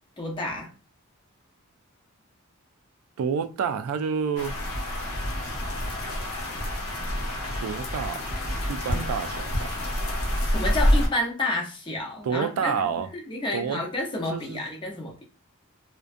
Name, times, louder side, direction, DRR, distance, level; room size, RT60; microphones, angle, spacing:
voice 1, 0.2-0.7 8.9-9.1 10.5-12.7 13.1-15.2, left 2 dB, 20° left, 0.6 m, -30 dB
voice 2, 3.2-4.6 7.6-8.2 8.7-9.7 12.2-13.1 13.5-13.8 14.3-14.6, right 6 dB, 85° right, 0.3 m, -28 dB
sound 1, 4.4-11.1, equal, 85° left, 0.8 m, -27 dB
2.4 x 2.2 x 2.4 m
head